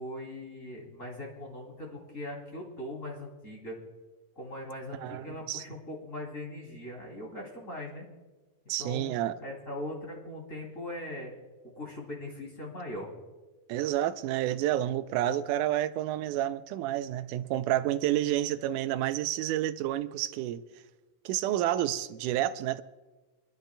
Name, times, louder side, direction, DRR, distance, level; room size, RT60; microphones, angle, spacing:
voice 1, 0.0-3.8 4.4-8.1 8.8-11.3 11.7-13.1, left 1 dB, 25° left, 2.8 m, -40 dB
voice 2, 5.0-5.6 8.7-9.4 13.7-20.6 21.3-22.8, right 13 dB, 90° right, 2.1 m, -29 dB
26.5 x 11.5 x 2.2 m
omnidirectional pair, 3.5 m